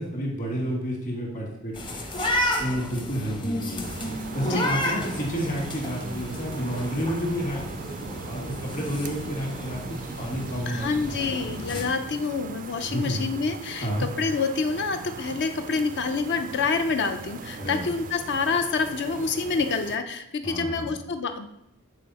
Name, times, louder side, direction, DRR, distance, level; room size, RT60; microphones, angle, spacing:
voice 1, 0.0-2.0 2.6-3.9 4.3-10.8 11.1-11.3 11.7-11.9 12.9-13.2 13.8-14.1 17.6-17.9 20.4-20.9, equal, 40° left, -1 dB, 1.7 m, -30 dB
sound 1, 1.7-11.8, left 1 dB, 20° left, 0.8 m, -32 dB
sound 2, 3.8-20.0, right 5 dB, 40° right, 0.3 m, -40 dB
voice 2, 10.7-21.5, left 4 dB, 55° left, 7 dB, 0.5 m, -27 dB
7.4 x 4.3 x 4.1 m, 0.83 s
head